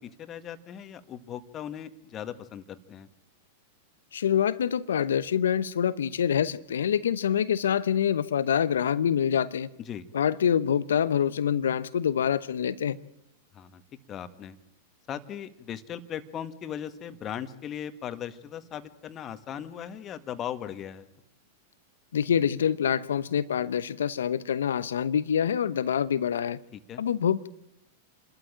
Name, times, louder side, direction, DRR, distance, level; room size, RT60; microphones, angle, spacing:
voice 1, 0.0-3.1 9.9-10.1 13.5-13.8 14.1-14.6 15.1-21.1 26.7-27.0, left 9 dB, 35° left, 1.8 m, -38 dB
voice 2, 4.1-9.7 10.1-13.0 22.1-26.6 27.0-27.5, left 8 dB, 75° left, 0.9 m, -26 dB
27.5 x 13.0 x 9.0 m
hypercardioid pair, 100°, 0 cm